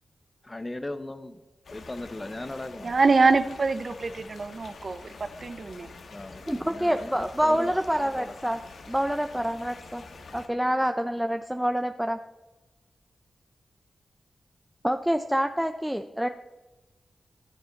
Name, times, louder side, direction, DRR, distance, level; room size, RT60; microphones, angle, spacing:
voice 1, 0.5-1.4 1.7-3.0 6.1-8.4, left 2 dB, 25° left, 11 dB, 0.9 m, -38 dB
sound 1, 1.6-10.5, left 3 dB, 80° left, 1.5 m, -46 dB
voice 2, 2.8-5.9, right 4 dB, 55° right, 12 dB, 0.6 m, -24 dB
voice 3, 6.5-8.6 8.9-10.0 10.3-12.2 14.8-16.3, equal, 5° right, 7 dB, 0.6 m, -27 dB
15.0 x 9.6 x 4.0 m, 1.1 s
cardioid pair, 65°, 0 cm